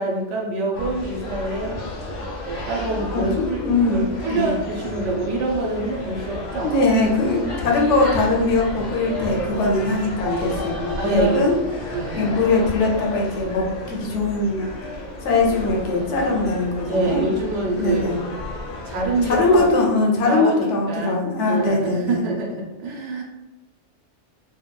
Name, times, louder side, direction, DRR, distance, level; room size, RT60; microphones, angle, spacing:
voice 1, 0.0-1.8 2.5-6.7 11.0-11.6 11.9-12.3 16.9-18.1 18.9-19.6 20.2-23.2, right 2 dB, 75° right, -2 dB, 0.9 m, -26 dB
sound 1, 0.7-19.7, left 2 dB, 60° left, 0.6 m, -32 dB
voice 2, 3.1-4.5 6.6-11.5 12.1-14.7 15.2-17.3 17.8-18.2 19.2-22.2, left 2 dB, 80° left, -1 dB, 0.9 m, -21 dB
2.7 x 2.1 x 2.2 m, 1.0 s
omnidirectional pair, 1.3 m